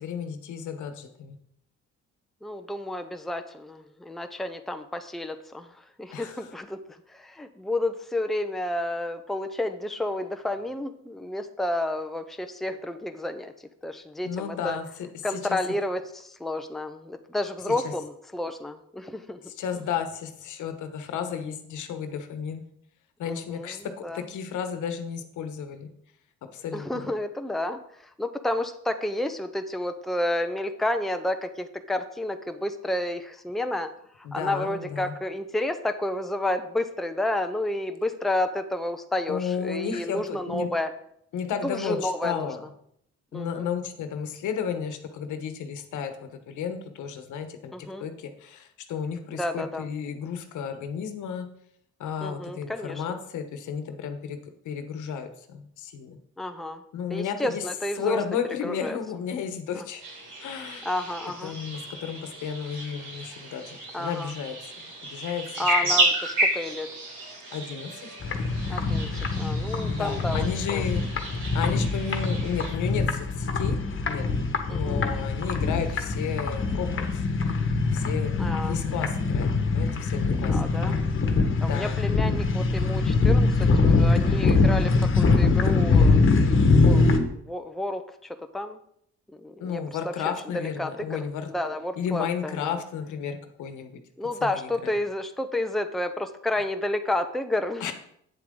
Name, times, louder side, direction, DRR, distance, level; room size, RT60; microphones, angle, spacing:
voice 1, 0.0-1.4 6.1-6.5 14.2-14.9 15.3-15.6 17.8-17.9 19.5-22.6 23.2-23.8 24.1-25.9 26.5-27.1 34.2-35.1 39.3-40.7 41.3-42.6 43.3-47.7 48.0-51.5 52.0-54.4 54.6-56.2 56.9-57.6 58.0-60.0 60.4-60.9 61.4-66.0 67.5-68.1 69.9-71.0 71.5-73.8 74.1-74.2 74.7-77.0 77.9-80.6 81.6-82.0 89.6-91.5 92.0-93.9 94.4-94.9 97.8-97.9, left 7 dB, 80° left, 7 dB, 1.2 m, -33 dB
voice 2, 2.4-5.7 6.0-6.8 7.1-13.5 13.8-14.8 15.2-19.4 23.3-24.2 26.7-27.8 28.2-33.9 34.3-40.9 41.6-42.5 43.3-43.7 47.7-48.0 49.3-49.9 52.2-53.2 56.4-56.8 57.1-58.2 58.6-59.0 59.7-59.9 60.8-61.5 63.9-64.3 65.6-66.9 68.7-69.1 69.4-70.8 74.7-75.0 78.4-78.8 80.5-81.0 81.6-86.3 86.7-87.1 87.5-88.0 88.5-88.8 89.4-90.1 90.5-92.7 94.2-97.9, left 1 dB, ahead, 7 dB, 0.7 m, -30 dB
sound 1, 60.0-72.7, right 2 dB, 90° right, 4.2 m, -32 dB
sound 2, 68.2-87.2, left 3 dB, 40° left, 1.4 m, -23 dB
8.8 x 7.4 x 3.8 m, 0.70 s
cardioid pair, 90°, 30 cm